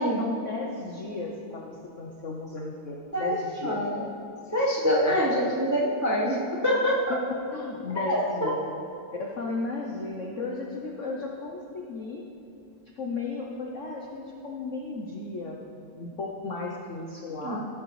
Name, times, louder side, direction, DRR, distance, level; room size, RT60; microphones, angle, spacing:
voice 1, 0.0-3.8 5.1-5.6 7.5-8.6 9.2-12.2 13.0-17.7, left 3 dB, 65° left, -1 dB, 0.7 m, -35 dB
voice 2, 3.1-4.0 4.5-6.4 6.6-7.1 8.0-8.5 17.4-17.6, equal, 20° right, -4 dB, 0.4 m, -25 dB
16.0 x 7.6 x 3.2 m, 2.8 s
omnidirectional pair, 2.3 m